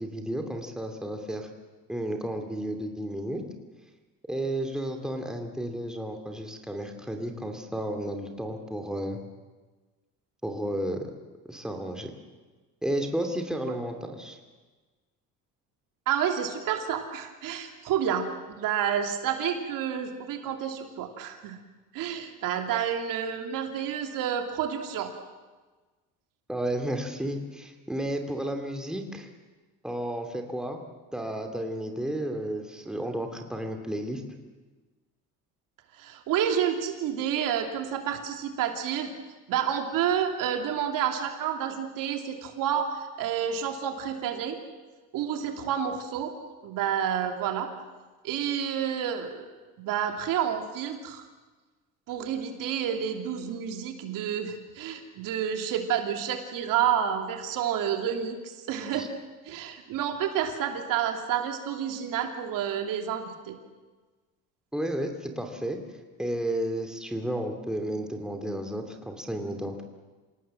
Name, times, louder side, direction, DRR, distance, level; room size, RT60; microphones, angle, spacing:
voice 1, 0.0-1.5 1.9-3.4 4.3-9.2 10.4-11.1 11.5-12.1 12.8-14.4 26.5-29.3 29.8-30.8 31.1-34.2 58.9-59.1 64.7-65.8 66.2-69.8, right 1 dB, ahead, 4 dB, 2.8 m, -32 dB
voice 2, 16.1-18.3 18.6-21.6 21.9-25.1 36.0-39.1 39.5-44.6 45.1-46.3 46.6-47.7 48.2-49.4 49.8-51.2 52.1-59.1 59.5-63.6, right 9 dB, 75° right, 4 dB, 2.9 m, -29 dB
27.0 x 18.0 x 7.7 m, 1.3 s
cardioid pair, 125°, 33 cm